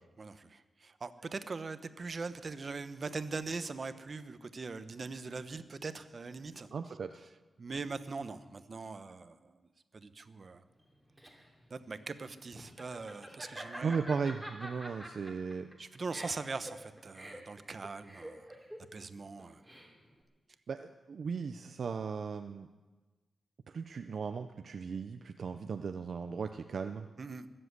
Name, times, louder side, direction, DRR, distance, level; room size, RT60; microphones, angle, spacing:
voice 1, 0.2-6.7 7.6-9.6 9.9-10.6 11.7-14.1 15.8-18.5 18.9-19.6 27.2-27.5, right 4 dB, 50° right, 11 dB, 1.0 m, -41 dB
voice 2, 6.7-7.2 13.8-15.7 20.7-22.7 23.7-27.1, right 5 dB, 70° right, 8 dB, 0.6 m, -37 dB
Laughter, 10.8-20.2, right 1 dB, 5° right, 2.9 m, -47 dB
21.0 x 7.8 x 8.1 m, 1.2 s
cardioid pair, 80°, 0 cm